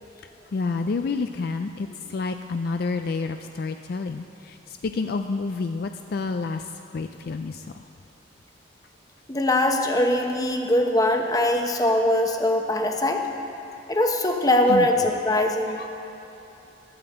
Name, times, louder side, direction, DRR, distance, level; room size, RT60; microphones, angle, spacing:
voice 1, 0.5-4.6 4.8-6.6 6.9-7.7 14.7-14.9 15.8-15.9, left 4 dB, 55° left, 7 dB, 0.4 m, -29 dB
voice 2, 9.3-13.3 13.9-15.8, left 1 dB, 20° left, 3 dB, 0.9 m, -22 dB
11.0 x 8.6 x 7.9 m, 3.0 s
head